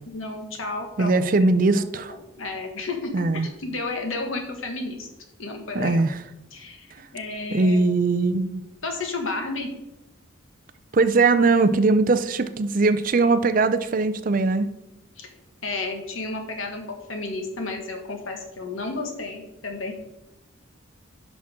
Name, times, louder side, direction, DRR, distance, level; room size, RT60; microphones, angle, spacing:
voice 1, 0.1-1.1 1.7-1.9 2.4-5.1 5.4-6.0 6.5-6.9 7.1-7.8 8.8-9.7 15.2-15.3 15.6-19.9, left 3 dB, 85° left, 3 dB, 1.6 m, -32 dB
voice 2, 1.0-2.1 3.1-3.5 5.7-6.2 7.5-8.6 10.9-14.7, right 3 dB, 40° right, 11 dB, 0.5 m, -20 dB
10.5 x 6.0 x 3.7 m, 0.93 s
head